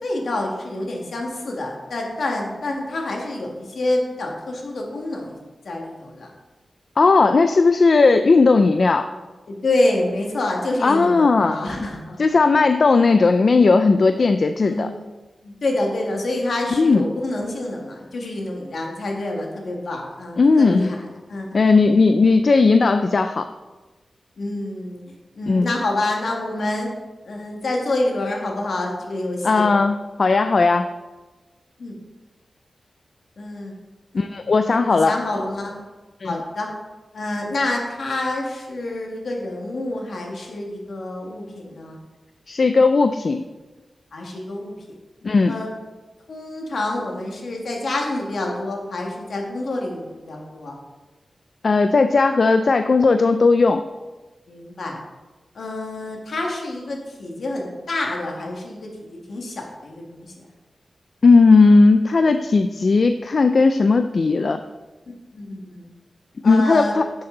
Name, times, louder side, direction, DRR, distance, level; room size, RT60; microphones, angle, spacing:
voice 1, 0.0-5.4 5.7-6.3 9.5-12.2 14.6-14.9 15.4-21.0 21.3-21.6 24.4-25.0 25.3-26.9 27.3-29.7 31.8-32.0 33.4-33.7 34.7-35.7 36.2-36.7 37.1-42.0 44.1-44.7 45.5-45.7 46.3-50.8 54.5-55.0 55.6-60.4 65.3-65.9 66.4-66.9, left 2 dB, 70° left, 0 dB, 1.9 m, -27 dB
voice 2, 7.0-9.1 10.8-11.6 12.2-14.9 16.7-17.1 20.4-20.9 21.5-23.5 25.5-25.7 29.4-30.9 34.1-35.1 36.2-36.4 42.5-43.4 45.2-45.6 51.6-53.8 61.2-64.6 66.4-67.1, left 3 dB, 50° left, 8 dB, 0.4 m, -16 dB
10.5 x 6.9 x 3.9 m, 1.2 s
wide cardioid pair, 125°, 0 cm